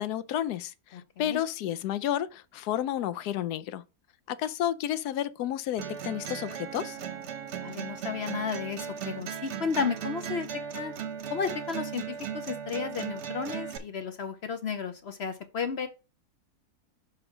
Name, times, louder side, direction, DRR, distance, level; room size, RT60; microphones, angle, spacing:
voice 1, 0.0-3.8 4.3-7.0, left 11 dB, 75° left, 1.1 m, -31 dB
voice 2, 0.9-1.4 7.6-10.5 10.7-10.9 11.3-15.9, left 6 dB, 55° left, 0.7 m, -33 dB
sound 1, 5.8-13.8, right 8 dB, 50° right, 1.0 m, -37 dB
6.1 x 4.5 x 4.9 m
omnidirectional pair, 1.7 m